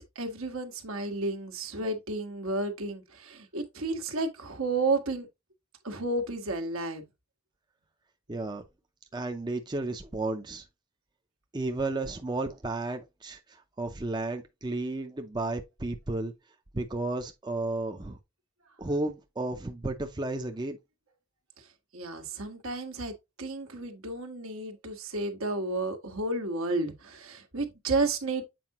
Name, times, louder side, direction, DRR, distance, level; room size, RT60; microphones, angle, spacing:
voice 1, 0.0-5.3 5.8-7.0 21.9-23.1 23.4-28.4, right 2 dB, 75° right, 1.5 m, -32 dB
voice 2, 8.3-8.6 9.1-10.6 11.5-16.3 16.7-18.2 18.8-20.8, right 2 dB, 20° right, 0.6 m, -33 dB
7.7 x 4.7 x 3.0 m
head